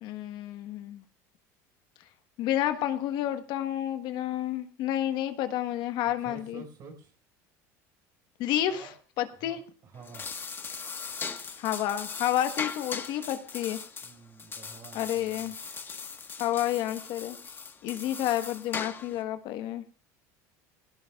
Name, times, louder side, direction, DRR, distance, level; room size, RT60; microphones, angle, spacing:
voice 1, 0.0-1.0 2.4-6.6 8.4-9.6 11.6-13.8 14.9-15.5 16.4-17.4 17.8-19.8, left 12 dB, 60° left, 9 dB, 1.3 m, -30 dB
voice 2, 6.2-7.1 8.7-8.9 9.4-10.3 14.0-15.5, right 5 dB, 50° right, 2 dB, 4.9 m, -49 dB
sound 1, 9.9-19.2, left 5 dB, 25° left, 1.4 m, -39 dB
20.0 x 16.5 x 2.4 m, 0.37 s
supercardioid pair, 100°, 8 cm